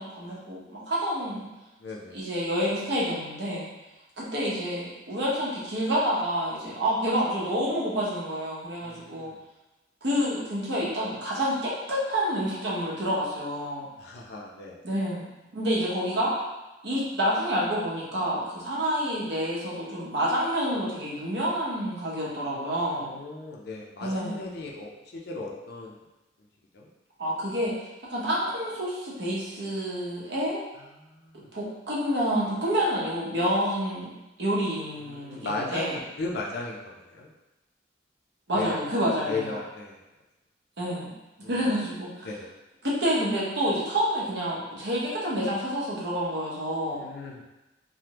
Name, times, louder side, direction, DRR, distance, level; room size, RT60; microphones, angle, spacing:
voice 1, 0.0-1.5 2.1-3.7 4.2-9.3 10.0-13.9 14.8-15.3 15.5-16.3 16.8-23.1 24.0-24.4 27.2-27.7 28.1-30.6 31.5-34.1 34.4-36.0 38.5-39.6 40.8-41.1 41.5-42.3 42.8-47.0, equal, 65° right, -6 dB, 0.9 m, -28 dB
voice 2, 1.8-2.2 8.8-9.4 14.0-14.8 23.0-26.0 26.7-26.9 30.8-31.5 35.0-37.3 38.5-38.8 39.0-40.0 41.4-41.7 42.2-42.5 46.9-47.4, left 3 dB, 60° left, -2 dB, 0.4 m, -36 dB
3.3 x 2.1 x 2.9 m, 1.0 s
head